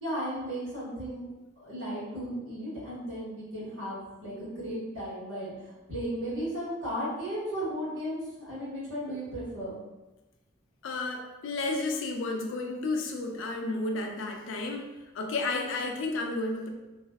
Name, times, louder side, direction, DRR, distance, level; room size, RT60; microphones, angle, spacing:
voice 1, 0.0-1.2 1.6-8.2 8.4-9.8, equal, 75° right, -9 dB, 1.3 m, -35 dB
voice 2, 10.8-14.9 15.1-16.7, left 2 dB, 75° left, 3 dB, 0.4 m, -32 dB
2.6 x 2.1 x 2.2 m, 1.1 s
head